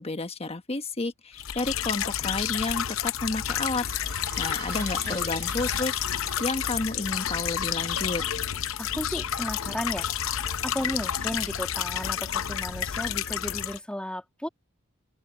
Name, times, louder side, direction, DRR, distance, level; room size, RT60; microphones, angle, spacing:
voice 1, 0.0-8.2, left 2 dB, 30° left, 1.3 m, -31 dB
sound 1, 1.4-13.8, left 9 dB, 70° left, 0.7 m, -30 dB
sound 2, 3.8-9.1, right 9 dB, 50° right, 2.4 m, -48 dB
voice 2, 4.8-5.4 8.8-14.5, equal, 5° left, 2.3 m, -35 dB
open air
head